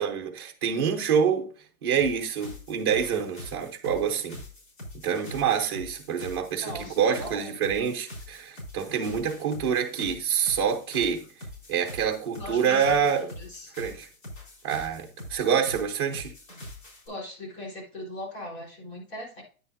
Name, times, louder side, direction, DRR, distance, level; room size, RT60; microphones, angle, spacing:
voice 1, 0.0-1.5 1.8-4.4 5.0-11.2 11.7-13.3 13.8-14.1 14.6-16.3, right 7 dB, 15° right, 0.7 m, -26 dB
sound 1, 2.0-17.1, left 1 dB, 60° left, 4.3 m, -44 dB
voice 2, 6.6-7.6 12.3-13.7 17.1-19.4, left 1 dB, 45° left, 4.0 m, -39 dB
9.5 x 7.8 x 2.6 m
hypercardioid pair, 180°, 44 cm